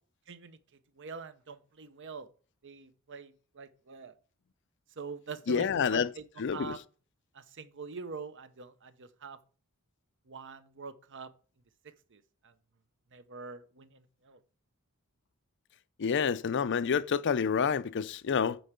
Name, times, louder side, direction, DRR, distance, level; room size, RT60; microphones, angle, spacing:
voice 1, 0.3-0.6 0.9-2.3 2.6-4.1 5.0-6.8 7.3-9.4 10.3-11.3 11.8-12.5 13.1-14.4, right 4 dB, 55° right, 0.9 m, -45 dB
voice 2, 5.5-6.1 6.4-6.7 16.0-18.6, left 6 dB, 55° left, 0.5 m, -28 dB
9.2 x 4.7 x 6.7 m
head